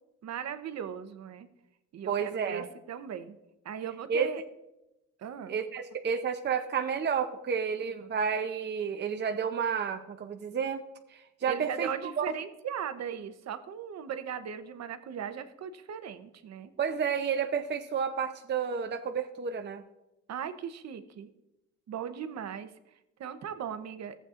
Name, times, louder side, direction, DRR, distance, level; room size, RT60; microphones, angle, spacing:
voice 1, 0.2-1.5 1.9-3.3 3.6-4.4 5.2-5.6 11.5-16.7 20.3-21.3 21.9-24.2, right 8 dB, 60° right, 10 dB, 0.9 m, -38 dB
voice 2, 2.1-2.7 4.1-4.3 5.5-10.8 11.1-11.9 12.2-12.3 16.8-19.8, right 6 dB, 35° right, 6 dB, 0.6 m, -31 dB
14.5 x 8.0 x 2.5 m, 0.91 s
cardioid pair, 90°, 30 cm